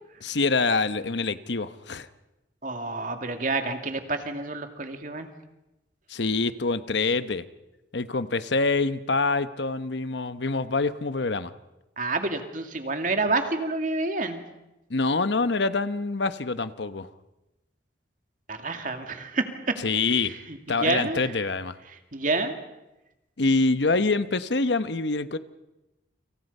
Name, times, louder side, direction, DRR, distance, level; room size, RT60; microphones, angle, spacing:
voice 1, 0.2-2.1 6.1-7.4 7.9-11.5 14.9-17.1 19.8-20.4 20.7-21.8 23.4-25.4, left 3 dB, 70° left, 12 dB, 1.0 m, -25 dB
voice 2, 2.6-5.3 12.0-14.4 18.5-19.5 20.5-21.2 22.1-22.5, right 3 dB, 45° right, 6 dB, 2.4 m, -28 dB
30.0 x 26.5 x 5.5 m, 0.98 s
head